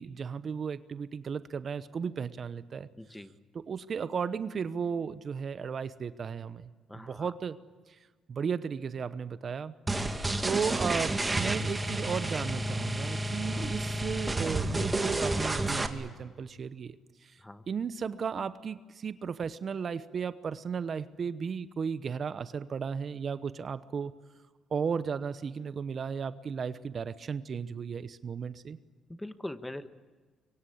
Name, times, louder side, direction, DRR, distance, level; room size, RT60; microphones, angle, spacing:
voice 1, 0.0-2.9 3.5-7.6 8.3-9.7 10.4-17.0 17.2-17.3 17.7-24.1 24.7-28.8, right 6 dB, 50° right, 14 dB, 0.9 m, -35 dB
voice 2, 3.0-3.4 6.9-7.3 13.5-13.7 17.4-17.6 29.1-29.9, left 1 dB, 10° left, 10 dB, 1.4 m, -42 dB
sound 1, 9.9-15.9, right 2 dB, 20° right, 2.1 m, -30 dB
24.5 x 23.5 x 8.6 m, 1.4 s
cardioid pair, 75°, 0 cm